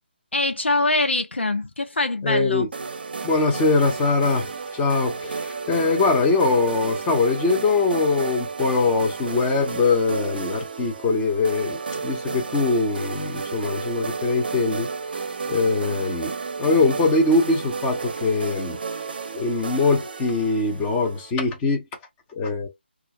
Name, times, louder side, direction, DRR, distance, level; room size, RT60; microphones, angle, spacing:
voice 1, 0.3-2.7, left 2 dB, 85° left, 0.5 m, -23 dB
voice 2, 2.2-2.7 3.2-14.9 15.5-16.3 16.6-18.8 19.3-21.9 22.3-22.7, left 3 dB, 15° left, 0.7 m, -22 dB
sound 1, 2.7-21.3, right 4 dB, 55° right, 0.6 m, -32 dB
2.4 x 2.1 x 2.9 m
figure-of-eight pair, 155°, 6 cm